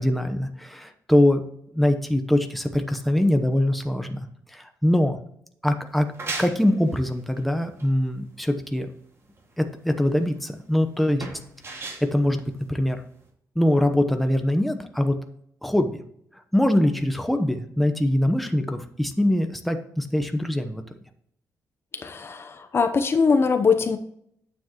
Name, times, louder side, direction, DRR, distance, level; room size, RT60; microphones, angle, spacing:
voice 1, 0.0-1.4 1.7-4.2 4.5-5.2 5.6-6.1 6.4-8.9 9.6-11.3 11.7-13.0 13.5-15.2 15.6-16.0 16.5-20.8, left 1 dB, ahead, 6 dB, 0.9 m, -23 dB
sound 1, 5.9-13.3, right 3 dB, 40° right, 2.0 m, -39 dB
voice 2, 21.9-24.0, left 5 dB, 40° left, 8 dB, 0.7 m, -22 dB
9.1 x 7.2 x 3.0 m, 0.70 s
cardioid pair, 115°, 7 cm